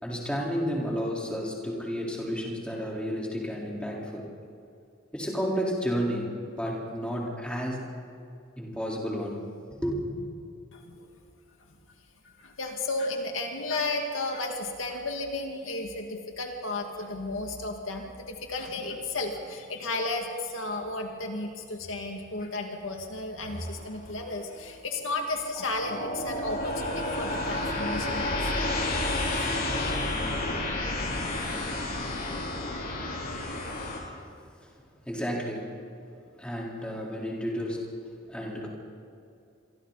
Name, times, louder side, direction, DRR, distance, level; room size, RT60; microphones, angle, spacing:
voice 1, 0.0-4.3 5.1-7.8 8.6-10.1 34.0-34.1 35.1-35.8 36.4-37.9 38.3-38.7, equal, 5° left, -4 dB, 4.1 m, -32 dB
voice 2, 10.7-11.1 12.2-28.7 29.3-29.5, left 2 dB, 70° left, 2 dB, 2.3 m, -33 dB
sound 1, 23.5-24.2 25.1-25.2 25.5-34.0, left 2 dB, 45° left, 3.9 m, -31 dB
28.0 x 24.0 x 4.2 m, 2.5 s
head